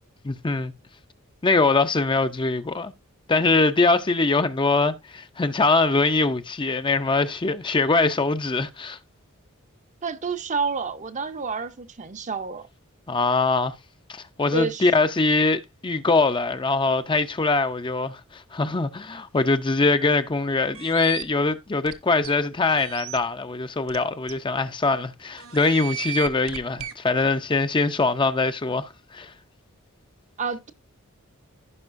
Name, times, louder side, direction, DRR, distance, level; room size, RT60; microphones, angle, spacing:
voice 1, 0.2-0.7 1.4-2.9 3.3-9.0 13.1-13.7 14.1-29.3, left 3 dB, 25° left, 0.5 m, -23 dB
voice 2, 10.0-12.7 14.5-14.9 30.4-30.7, right 4 dB, 35° right, 0.7 m, -29 dB
sound 1, 20.7-21.2 21.9-22.0 22.2-22.3 22.8-23.2 23.9-24.0 24.3-24.4 25.4-26.9, right 10 dB, 75° right, 0.8 m, -34 dB
15.5 x 5.2 x 2.5 m
head